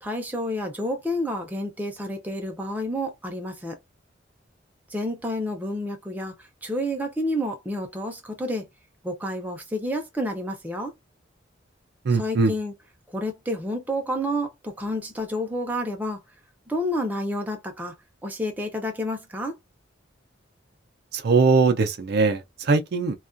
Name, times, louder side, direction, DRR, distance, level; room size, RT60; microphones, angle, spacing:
voice 1, 0.0-3.8 4.9-6.3 6.6-8.7 9.0-10.9 12.1-12.7 13.1-16.2 16.7-17.9 18.2-19.6, equal, 10° right, 0.5 m, -29 dB
voice 2, 12.1-12.5 21.1-23.2, right 4 dB, 55° right, 0.4 m, -21 dB
2.3 x 2.2 x 2.4 m
head